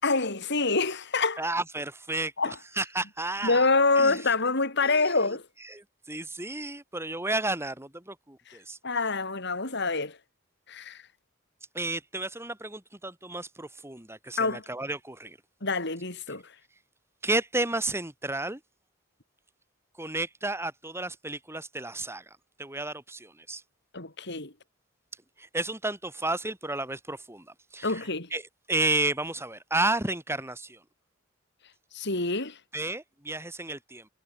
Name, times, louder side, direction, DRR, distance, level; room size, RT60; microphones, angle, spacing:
voice 1, 0.0-1.4 2.4-2.6 3.4-5.4 8.5-8.6 8.8-10.2 10.7-11.0 14.4-14.6 15.6-16.4 23.9-24.5 27.8-28.3 31.9-32.6, left 3 dB, 60° left, 7.1 m, -26 dB
voice 2, 1.4-3.7 4.0-4.2 4.8-5.2 5.7-8.8 11.7-15.4 17.2-18.6 20.0-23.6 25.4-28.4 28.7-30.8 32.7-34.1, right 2 dB, 15° right, 6.4 m, -32 dB
head